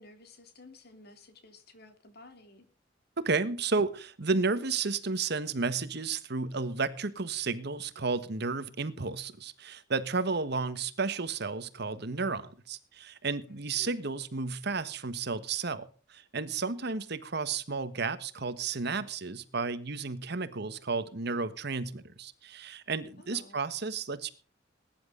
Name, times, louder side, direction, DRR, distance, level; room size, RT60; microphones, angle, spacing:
voice 1, 0.0-2.7 13.5-14.1 23.2-23.6, left 2 dB, 55° left, 3.2 m, -54 dB
voice 2, 3.2-24.3, right 4 dB, 60° right, 1.3 m, -32 dB
20.5 x 10.5 x 3.9 m
head